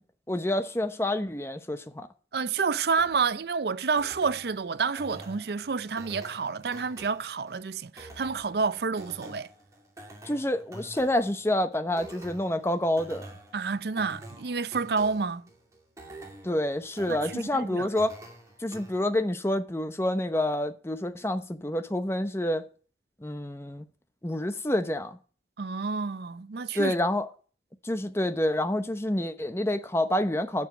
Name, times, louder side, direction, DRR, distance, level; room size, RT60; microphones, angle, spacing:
voice 1, 0.3-2.1 10.2-13.2 16.4-18.1 18.6-22.6 23.2-23.9 24.2-25.2 26.7-27.3 27.8-30.7, left 1 dB, 15° left, 0.8 m, -28 dB
voice 2, 2.3-9.5 13.5-15.5 17.1-17.9 25.6-27.0, right 5 dB, 60° right, 0.5 m, -29 dB
sound 1, 3.0-19.0, right 1 dB, 20° right, 2.4 m, -48 dB
9.1 x 7.0 x 8.4 m
head